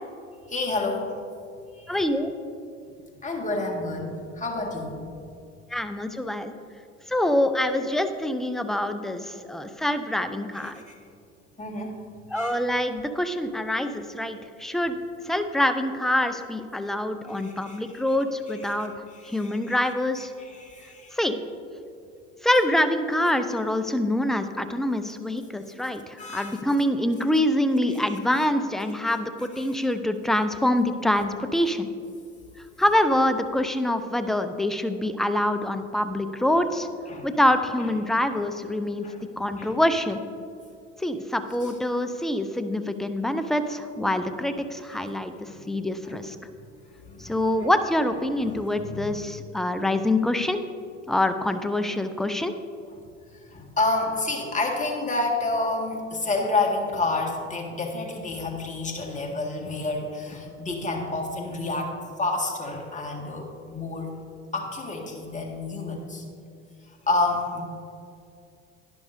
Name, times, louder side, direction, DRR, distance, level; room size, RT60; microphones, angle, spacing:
voice 1, 0.3-1.2 1.7-2.1 3.2-5.0 10.5-10.9 11.6-11.9 12.3-12.6 17.3-18.0 18.5-18.8 19.1-19.8 20.4-21.2 26.2-26.6 37.1-37.3 39.0-39.2 39.6-39.7 41.6-41.7 45.5-45.6 47.0-47.7 48.8-49.1 53.3-64.1 64.5-66.2 67.1-67.6, left 2 dB, 20° left, 0 dB, 1.9 m, -29 dB
voice 2, 1.9-2.3 5.7-6.5 7.1-10.7 12.3-15.0 15.2-18.9 19.2-20.3 21.1-21.4 22.4-31.9 32.8-36.9 37.2-39.1 39.4-40.2 41.0-46.4 47.2-50.6 51.1-52.5, left 1 dB, ahead, 9 dB, 0.5 m, -25 dB
11.5 x 10.5 x 2.7 m, 2.5 s
hypercardioid pair, 75°, 36 cm